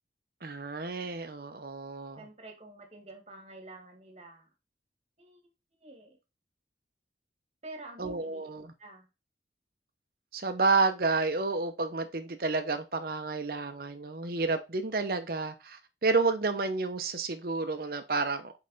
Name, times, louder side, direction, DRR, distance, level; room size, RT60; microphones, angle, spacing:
voice 1, 0.4-2.3 8.0-8.7 10.3-18.5, right 3 dB, 55° right, 0.9 m, -30 dB
voice 2, 2.2-4.5 5.2-5.4 5.8-6.2 7.6-8.5 8.8-9.1, right 2 dB, 35° right, 1.7 m, -48 dB
5.4 x 4.9 x 4.0 m
head